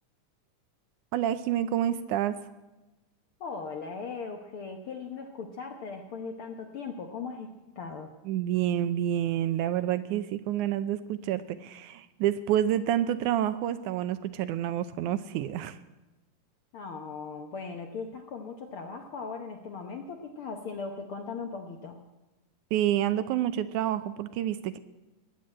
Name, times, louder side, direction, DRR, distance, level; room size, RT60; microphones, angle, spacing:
voice 1, 1.1-2.4 8.3-15.8 22.7-24.8, right 11 dB, 80° right, 12 dB, 2.0 m, -28 dB
voice 2, 3.4-8.1 16.7-22.0, left 5 dB, 65° left, 4 dB, 1.4 m, -39 dB
19.5 x 8.3 x 8.7 m, 1.1 s
omnidirectional pair, 3.7 m